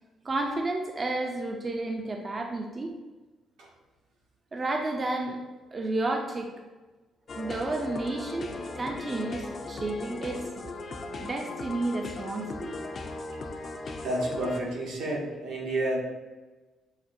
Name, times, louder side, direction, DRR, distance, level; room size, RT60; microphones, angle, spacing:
voice 1, 0.2-2.9 4.5-5.4 5.7-6.5 7.3-10.4 11.2-12.7, right 2 dB, 30° right, 3 dB, 0.4 m, -31 dB
sound 1, 7.3-14.6, left 2 dB, 45° left, 0.4 m, -38 dB
voice 2, 14.0-16.0, right 1 dB, 85° right, -3 dB, 1.0 m, -30 dB
5.7 x 2.2 x 2.6 m, 1.2 s
cardioid pair, 90°, 0 cm